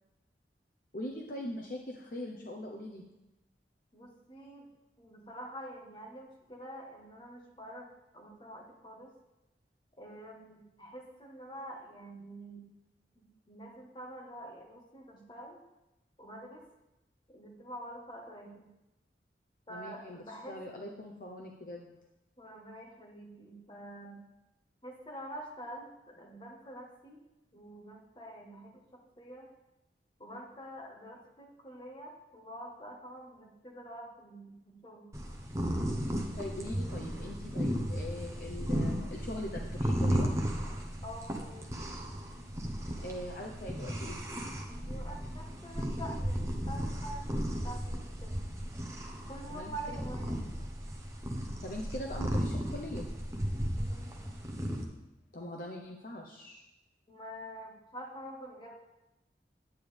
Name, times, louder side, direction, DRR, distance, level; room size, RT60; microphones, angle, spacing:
voice 1, 0.9-3.0 19.7-20.2 20.5-21.9 36.4-40.3 43.0-44.2 49.5-49.7 51.6-53.1 55.3-56.6, left 1 dB, 50° left, 0 dB, 0.8 m, -41 dB
voice 2, 3.9-4.7 5.0-9.1 10.0-12.7 13.1-15.6 16.2-16.6 17.3-18.7 19.7-20.6 22.4-24.2 24.8-27.2 27.5-29.5 30.2-35.1 41.0-41.8 44.7-48.4 49.3-50.5 53.7-54.2 57.1-58.7, right 1 dB, 25° left, -1 dB, 1.4 m, -47 dB
sound 1, 35.1-54.8, equal, 15° right, 0.9 m, -35 dB
9.3 x 8.9 x 3.4 m, 0.95 s
head